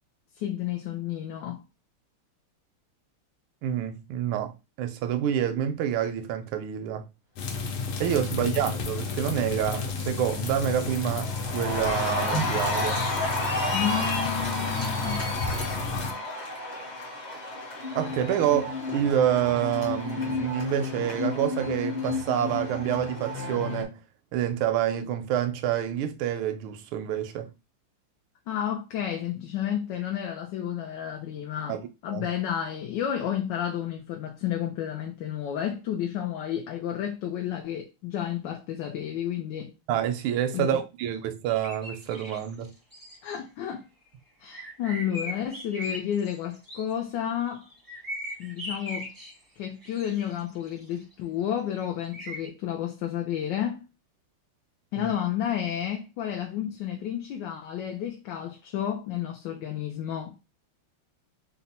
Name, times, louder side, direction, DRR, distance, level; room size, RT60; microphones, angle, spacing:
voice 1, 0.4-1.6 8.3-8.6 13.7-15.3 28.5-39.7 40.5-40.8 43.2-43.9 44.4-47.7 48.4-49.1 49.6-53.9 54.9-60.3, left 10 dB, 75° left, 1.1 m, -31 dB
voice 2, 3.6-7.1 8.0-13.0 17.9-24.0 24.3-27.5 31.7-32.2 39.9-42.7 55.0-55.1, right 10 dB, 85° right, 1.4 m, -28 dB
sound 1, 7.4-16.1, left 4 dB, 90° left, 1.7 m, -32 dB
Cheering, 9.0-9.4 9.7-23.8, left 2 dB, 40° left, 0.6 m, -32 dB
sound 2, 41.5-43.4 44.5-46.9 47.4-49.4 49.8-51.1 52.1-52.5, equal, 20° right, 0.6 m, -39 dB
4.1 x 2.1 x 4.1 m
omnidirectional pair, 2.3 m